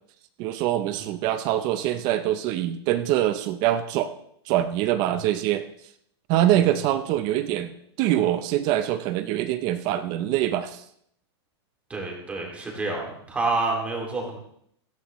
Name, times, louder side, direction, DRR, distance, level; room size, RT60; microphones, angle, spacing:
voice 1, 0.4-4.1 4.5-5.6 6.3-10.8, right 12 dB, 30° right, 10 dB, 0.6 m, -24 dB
voice 2, 11.9-14.4, right 3 dB, 10° right, -1 dB, 2.5 m, -28 dB
17.0 x 14.5 x 3.1 m, 0.70 s
supercardioid pair, 170°, 14 cm